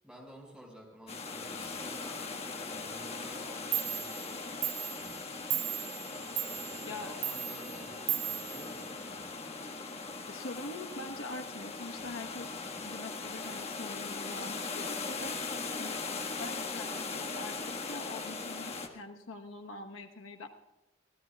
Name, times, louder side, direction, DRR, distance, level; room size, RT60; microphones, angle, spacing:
voice 1, 0.0-4.4 5.3-5.6 6.1-9.0, equal, 5° right, 0 dB, 5.4 m, -52 dB
sound 1, 1.1-18.9, left 4 dB, 30° left, 1.5 m, -39 dB
Clock, 3.4-3.5 3.7-9.4, right 11 dB, 40° right, 0.5 m, -37 dB
voice 2, 10.3-12.5 12.8-15.4 15.8-20.5, left 2 dB, 75° left, 4 dB, 1.2 m, -44 dB
26.5 x 17.0 x 2.3 m, 1.0 s
head